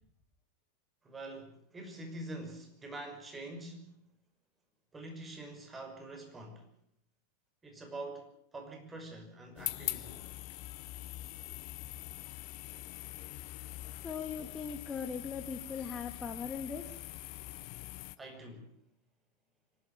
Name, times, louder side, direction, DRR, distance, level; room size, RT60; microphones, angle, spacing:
voice 1, 1.0-3.9 4.9-6.7 7.6-10.3 18.2-18.7, right 2 dB, 15° right, 5.8 m, -45 dB
sound 1, 9.6-18.2, left 17 dB, 45° left, 0.9 m, -43 dB
voice 2, 14.0-17.0, left 6 dB, 15° left, 2.0 m, -39 dB
25.5 x 12.5 x 9.0 m
figure-of-eight pair, 90°, 0 cm